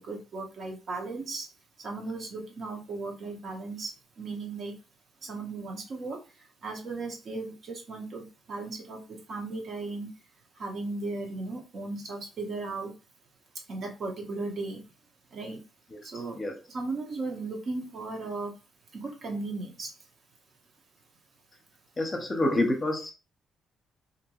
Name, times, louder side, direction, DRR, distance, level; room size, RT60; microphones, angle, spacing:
voice 1, 0.0-1.5 1.8-3.9 4.2-4.7 5.2-6.2 6.6-9.0 9.3-10.1 10.6-12.9 13.7-14.8 15.3-15.6 16.1-16.4 16.7-18.5 18.9-19.9, right 3 dB, 55° right, 2 dB, 0.8 m, -36 dB
voice 2, 22.0-23.1, left 1 dB, 30° left, 4 dB, 0.7 m, -27 dB
2.6 x 2.2 x 2.9 m, 0.31 s
cardioid pair, 90°, 0 cm